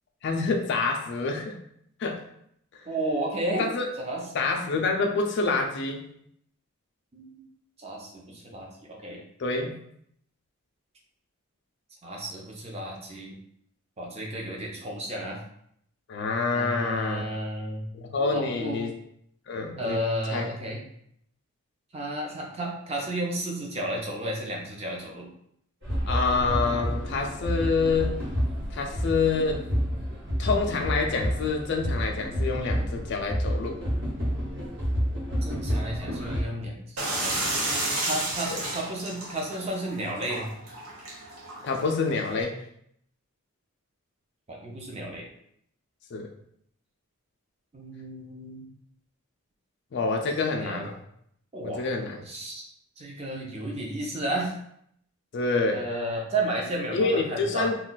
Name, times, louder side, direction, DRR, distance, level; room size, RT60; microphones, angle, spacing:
voice 1, 0.2-1.6 2.0-2.2 3.6-3.9 4.3-6.1 9.4-9.8 16.1-17.2 17.9-18.9 19.5-20.0 20.3-20.5 26.1-28.2 28.7-29.6 30.4-33.8 38.5-38.6 41.6-42.6 46.1-46.3 49.9-50.9 51.6-52.2 55.3-55.8 56.9-57.8, left 4 dB, 50° left, 2 dB, 0.3 m, -27 dB
voice 2, 2.9-3.7 4.0-4.3 7.1-7.4 7.8-9.2 12.0-13.3 14.0-15.4 16.5-17.9 18.3-18.8 19.8-20.8 21.9-25.3 35.4-37.6 38.1-40.5 44.5-45.3 47.7-48.7 50.4-50.9 51.5-51.9 52.3-52.6 53.0-54.5 55.7-57.7, right 1 dB, 30° right, -1 dB, 0.5 m, -32 dB
sound 1, 25.8-36.4, equal, 55° right, 1.0 m, -29 dB
sound 2, 37.0-42.4, right 2 dB, 75° right, 0.8 m, -32 dB
2.3 x 2.3 x 3.8 m, 0.71 s
head